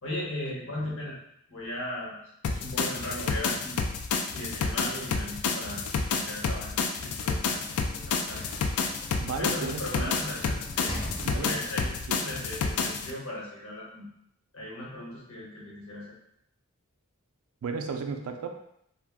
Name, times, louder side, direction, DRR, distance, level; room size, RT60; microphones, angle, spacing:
voice 1, 0.0-1.2 1.5-2.2 2.5-3.8 4.3-5.8 6.1-7.7 7.9-8.4 9.4-14.1 14.5-16.1, left 1 dB, 65° left, -4 dB, 1.0 m, -37 dB
sound 1, 2.4-13.1, left 5 dB, 80° left, 0.3 m, -30 dB
Sliding door / Slam, 7.2-11.9, left 1 dB, 25° left, 0.6 m, -43 dB
voice 2, 9.2-10.1 11.2-11.6 12.1-12.3 17.6-18.5, right 5 dB, 75° right, 5 dB, 0.4 m, -34 dB
2.4 x 2.1 x 3.4 m, 0.74 s
head